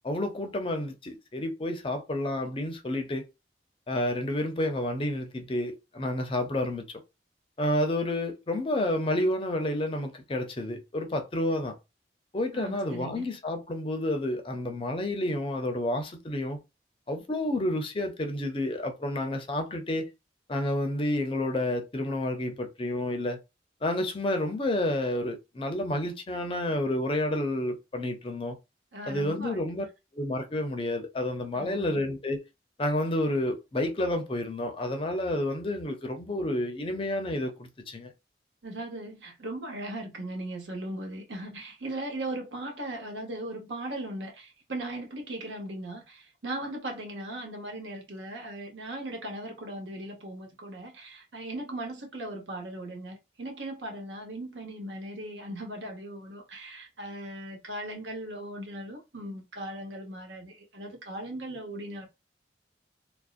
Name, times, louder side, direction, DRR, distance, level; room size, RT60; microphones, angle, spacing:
voice 1, 0.0-3.3 3.9-6.8 7.6-11.8 12.3-16.6 17.1-20.1 20.5-23.4 23.8-28.6 29.1-29.8 30.1-32.4 32.8-38.1, left 1 dB, 30° left, 0.5 m, -30 dB
voice 2, 12.5-13.3 28.9-29.6 31.5-32.0 38.6-62.1, right 1 dB, 80° right, 0.9 m, -38 dB
2.5 x 2.0 x 2.4 m
head